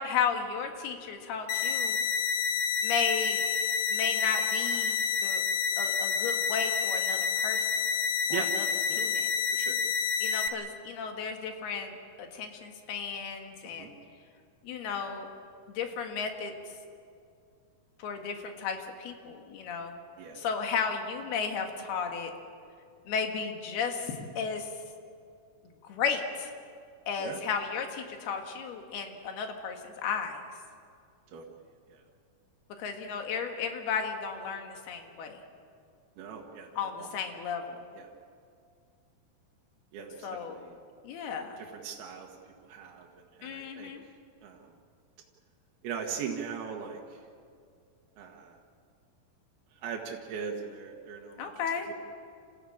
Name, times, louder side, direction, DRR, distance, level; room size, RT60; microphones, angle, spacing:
voice 1, 0.0-2.0 2.8-3.4 3.9-5.4 5.8-7.7 8.3-8.7 9.0-9.3 10.2-13.9 14.6-15.3 15.7-16.5 18.0-20.0 20.4-22.3 23.1-24.7 25.8-26.5 27.1-30.4 32.8-35.4 36.8-37.8 40.2-40.6 41.0-41.6 43.4-44.0 51.4-51.9, left 6 dB, 85° left, 4 dB, 3.8 m, -34 dB
sound 1, 1.5-10.5, left 6 dB, 70° left, 2.3 m, -29 dB
voice 2, 36.2-36.7 37.0-37.1 38.0-38.1 39.9-40.8 41.7-42.3 42.7-43.1 43.4-43.9 44.4-44.7 45.8-47.0 48.2-48.6 49.8-51.5 51.9-52.0, right 7 dB, 80° right, 0 dB, 3.4 m, -39 dB
27.5 x 15.5 x 8.7 m, 2.3 s
omnidirectional pair, 4.4 m